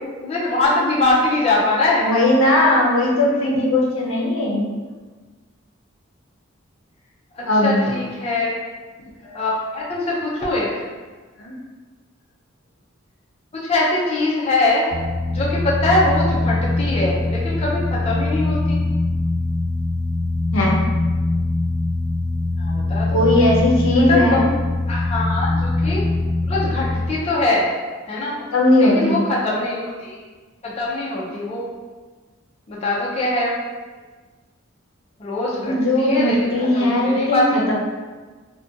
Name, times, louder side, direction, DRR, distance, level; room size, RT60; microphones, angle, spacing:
voice 1, 0.0-2.1 7.3-8.6 9.3-10.8 13.5-14.9 15.3-18.8 22.6-23.2 23.8-24.4 24.9-26.0 26.5-27.7 28.1-28.4 28.8-30.2 30.6-31.7 32.7-33.5 35.2-37.5, left 2 dB, 30° left, -5 dB, 0.4 m, -22 dB
voice 2, 2.0-4.7 7.4-7.8 9.2-9.3 11.4-11.5 20.5-20.8 23.1-24.5 28.5-29.2 35.6-37.7, left 1 dB, 75° left, -3 dB, 0.5 m, -18 dB
sound 1, 14.9-27.1, left 2 dB, 55° right, 0.9 m, -22 dB
2.4 x 2.2 x 2.6 m, 1.4 s
head